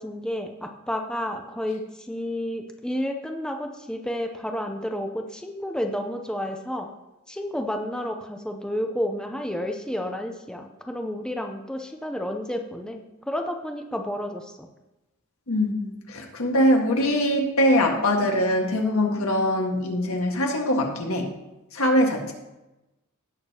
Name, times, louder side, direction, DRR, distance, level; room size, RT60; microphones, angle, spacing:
voice 1, 0.0-6.9 7.3-14.7, equal, 5° left, 3 dB, 0.6 m, -31 dB
voice 2, 15.5-21.3 21.7-22.3, left 1 dB, 75° left, 1 dB, 1.7 m, -22 dB
17.0 x 6.6 x 2.9 m, 1.0 s
head